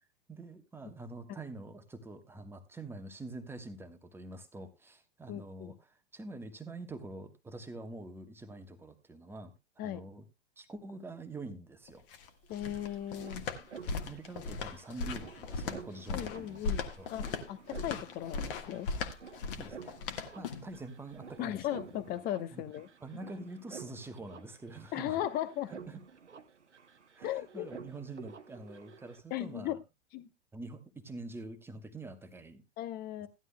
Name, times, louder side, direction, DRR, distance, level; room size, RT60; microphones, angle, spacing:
voice 1, 0.3-10.2 10.6-12.0 13.9-16.7 17.0-17.1 19.5-19.9 20.3-22.0 22.5-22.6 23.0-25.2 25.7-26.0 27.1-29.8 30.5-32.6, right 2 dB, 5° right, 7 dB, 1.1 m, -46 dB
voice 2, 5.3-5.7 9.8-10.0 12.5-13.4 16.1-18.9 21.4-22.9 24.9-25.7 27.2-27.7 29.3-29.8 30.1-30.3 32.8-33.3, left 12 dB, 25° left, 13 dB, 0.9 m, -37 dB
sound 1, 11.9-20.8, left 4 dB, 50° left, 1.5 m, -38 dB
sound 2, 12.2-12.3 12.4-29.2, right 6 dB, 80° right, 1.0 m, -51 dB
15.5 x 11.0 x 2.2 m, 0.22 s
figure-of-eight pair, 105°, 35 cm